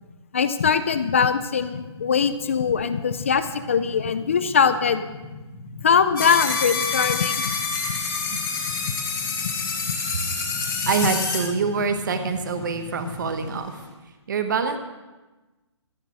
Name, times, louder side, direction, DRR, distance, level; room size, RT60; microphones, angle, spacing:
voice 1, 0.3-5.0 5.8-7.6 7.9-8.0 9.4-9.5, left 6 dB, 25° left, 12 dB, 0.5 m, -22 dB
sound 1, 1.7-13.5, left 4 dB, 10° left, 0.9 m, -41 dB
sound 2, 6.2-11.4, left 5 dB, 45° left, 4.1 m, -27 dB
voice 2, 10.9-13.8 14.3-14.8, right 5 dB, 40° right, 8 dB, 1.0 m, -25 dB
14.5 x 8.8 x 6.2 m, 1.2 s
hypercardioid pair, 175°, 15 cm